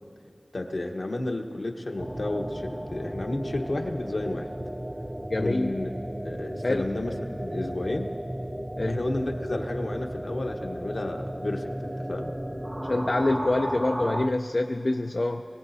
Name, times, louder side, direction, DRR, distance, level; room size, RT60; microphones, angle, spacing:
voice 1, 0.5-4.5 5.4-5.9 6.2-7.1 7.4-8.1 8.8-12.3, left 2 dB, 70° left, 2 dB, 1.1 m, -32 dB
sound 1, 2.0-14.3, equal, 15° right, 0.5 m, -34 dB
voice 2, 5.3-5.7 6.6-6.9 8.8-9.0 12.9-15.5, left 2 dB, 55° left, 4 dB, 0.4 m, -26 dB
24.0 x 17.0 x 2.7 m, 2.8 s
wide cardioid pair, 55°, 0 cm